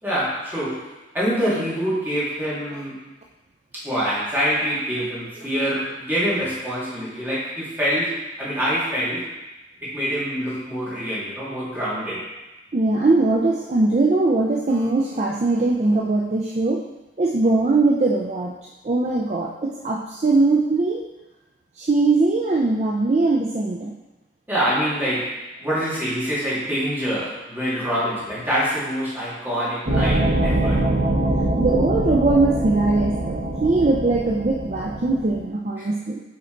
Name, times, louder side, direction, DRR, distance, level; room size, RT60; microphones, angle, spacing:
voice 1, 0.0-0.9 1.1-3.0 3.7-9.3 9.8-12.3 24.5-30.8 35.8-35.9, equal, 10° right, -10 dB, 2.2 m, -25 dB
voice 2, 12.7-16.8 17.2-18.5 18.8-21.0 21.8-23.9 31.6-36.2, right 3 dB, 35° right, -1 dB, 0.5 m, -20 dB
sound 1, 29.9-35.4, right 1 dB, 60° right, 1.1 m, -23 dB
7.7 x 4.1 x 3.8 m, 1.0 s
head